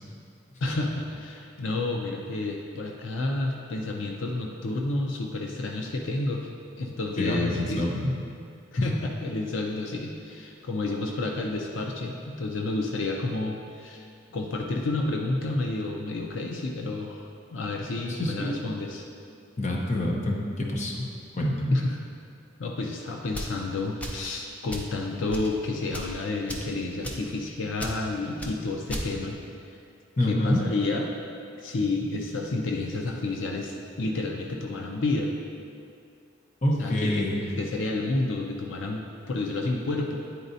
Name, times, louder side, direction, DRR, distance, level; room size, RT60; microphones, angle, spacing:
voice 1, 0.6-6.5 6.8-7.9 8.7-19.0 21.7-22.0 22.6-29.4 30.2-31.1 31.6-35.3 36.8-37.3 37.6-40.2, left 2 dB, 80° left, 1 dB, 0.5 m, -30 dB
voice 2, 7.2-8.1 8.8-8.9 18.1-18.5 19.6-21.1 21.4-21.8 30.2-30.6 36.6-37.4, left 1 dB, 40° left, -1 dB, 0.7 m, -26 dB
sound 1, 23.3-23.6 24.0-24.3 24.7-24.9 25.3-25.5 25.9-26.1 26.5-26.7 27.0-27.3 27.8-28.0 28.4-28.5 28.9-29.1, equal, 5° left, 0.5 m, -35 dB
9.3 x 4.0 x 2.7 m, 2.4 s
head